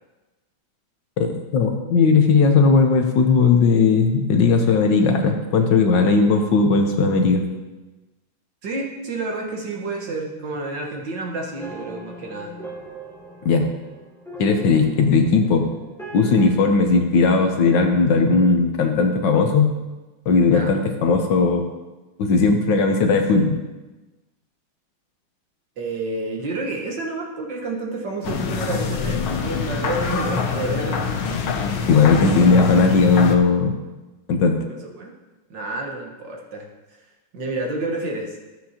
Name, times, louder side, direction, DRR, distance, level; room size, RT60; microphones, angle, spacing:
voice 1, 1.2-7.4 13.4-13.7 14.4-15.7 16.1-19.7 20.3-21.7 22.2-23.6 31.9-33.7 34.3-34.6, left 4 dB, 65° left, 5 dB, 1.4 m, -17 dB
voice 2, 8.6-12.5 20.5-20.7 25.8-31.1 34.8-35.1 35.5-36.7 37.3-38.4, right 2 dB, 65° right, 0 dB, 1.9 m, -29 dB
sound 1, 11.6-16.6, right 1 dB, ahead, 0.9 m, -40 dB
sound 2, 28.2-33.4, left 5 dB, 90° left, 1.7 m, -25 dB
13.5 x 7.7 x 2.9 m, 1.1 s
omnidirectional pair, 2.2 m